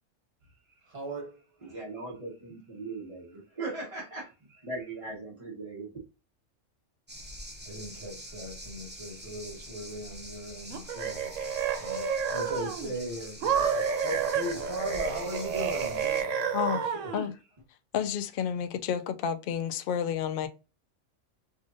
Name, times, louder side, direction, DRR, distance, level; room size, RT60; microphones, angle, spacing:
voice 1, 0.8-1.8 7.6-17.1, equal, 55° right, 1.8 m, -39 dB
voice 2, 1.6-4.3 4.6-5.9, right 3 dB, 30° right, 1.1 m, -39 dB
sound 1, 7.1-16.2, equal, 10° right, 0.6 m, -45 dB
sound 2, 10.7-12.9 13.4-17.3, right 7 dB, 85° right, 1.0 m, -30 dB
voice 3, 17.9-20.5, left 8 dB, 60° left, 0.6 m, -30 dB
4.9 x 2.5 x 2.6 m
omnidirectional pair, 1.3 m